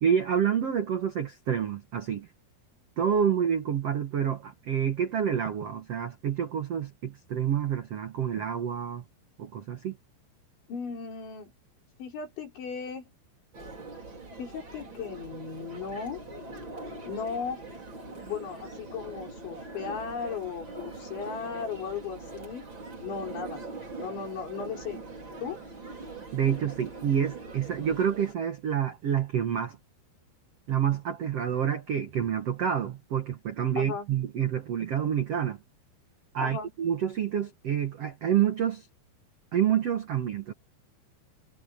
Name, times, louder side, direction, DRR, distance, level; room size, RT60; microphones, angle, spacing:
voice 1, 0.0-2.3 3.0-9.0 9.4-9.9 26.3-29.8 30.7-35.6 36.3-38.8 39.5-40.5, right 8 dB, 85° right, 1.3 m, -28 dB
voice 2, 10.7-11.5 12.0-13.1 14.4-16.2 17.1-17.6 18.1-22.7 23.0-23.6 24.0-25.0 25.4-25.6 33.8-34.1 36.4-36.7, left 6 dB, 90° left, 8.2 m, -36 dB
sound 1, 13.5-28.3, right 3 dB, 25° right, 5.2 m, -42 dB
omnidirectional pair, 5.1 m